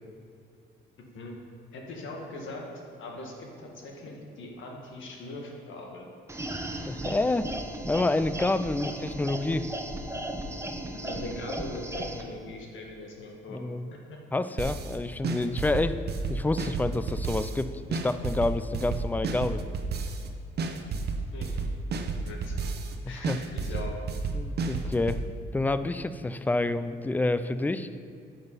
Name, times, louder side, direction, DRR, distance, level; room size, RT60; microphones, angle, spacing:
voice 1, 1.7-2.7 3.0-6.1 11.0-13.6 13.9-14.2 21.3-21.6 22.3-22.7 23.1-23.9, left 2 dB, 75° left, 0 dB, 1.8 m, -41 dB
sound 1, 6.3-12.2, right 1 dB, 15° right, 1.0 m, -36 dB
voice 2, 6.8-7.5 7.9-9.7 13.5-13.9 14.3-16.0 16.3-19.6 23.1-23.4 24.3-25.2 25.5-27.9, left 2 dB, 10° left, 12 dB, 0.4 m, -28 dB
sound 2, 14.6-14.9 15.2-17.6 17.9-20.3 20.6-22.9 23.2-25.2, right 4 dB, 55° right, 0.9 m, -31 dB
10.5 x 6.2 x 5.5 m, 2.4 s
cardioid pair, 90°, 20 cm